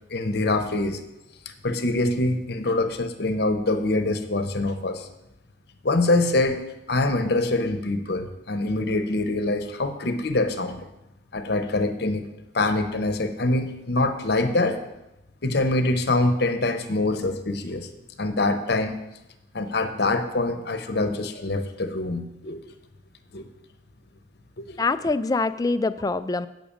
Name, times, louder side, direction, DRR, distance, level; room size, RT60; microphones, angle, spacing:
voice 1, 0.1-1.0 1.6-5.1 5.8-6.6 6.9-10.9 11.3-12.3 12.5-14.8 15.4-17.9 18.2-19.0 19.5-22.6 23.3-23.5 24.6-24.8, left 2 dB, 60° left, 9 dB, 0.9 m, -24 dB
voice 2, 24.8-26.5, left 3 dB, 20° left, 13 dB, 0.3 m, -24 dB
8.6 x 5.9 x 7.2 m, 0.94 s
head